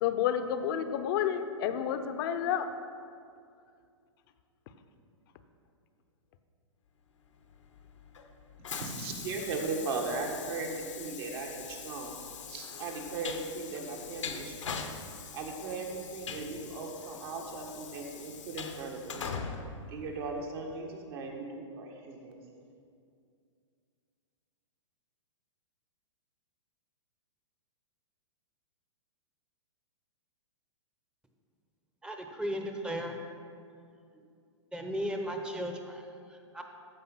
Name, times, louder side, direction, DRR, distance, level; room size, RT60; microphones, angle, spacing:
voice 1, 0.0-2.7, left 9 dB, 45° left, 9 dB, 0.8 m, -30 dB
Train, 7.5-20.7, left 6 dB, 75° left, 1.0 m, -42 dB
voice 2, 8.6-12.2 12.5-14.9 15.3-19.3 19.9-22.5, right 3 dB, 50° right, 1 dB, 1.9 m, -38 dB
voice 3, 32.0-33.2 34.7-36.6, equal, 5° right, 4 dB, 0.9 m, -36 dB
14.0 x 5.4 x 5.7 m, 2.3 s
hypercardioid pair, 115°, 16 cm